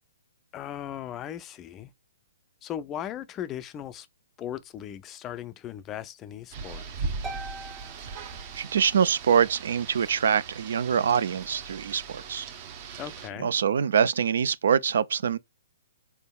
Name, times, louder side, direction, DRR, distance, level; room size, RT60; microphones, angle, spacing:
voice 1, 0.5-1.9 2.6-4.1 4.4-6.8 13.0-13.5, left 10 dB, 25° left, 0.3 m, -37 dB
Rain, 6.5-13.3, right 4 dB, 40° right, 0.8 m, -39 dB
Harp, 7.2-9.1, right 2 dB, 15° right, 1.2 m, -42 dB
voice 2, 8.6-12.5 13.4-15.4, right 7 dB, 70° right, 0.3 m, -24 dB
4.4 x 3.4 x 2.3 m
hypercardioid pair, 140°, 0 cm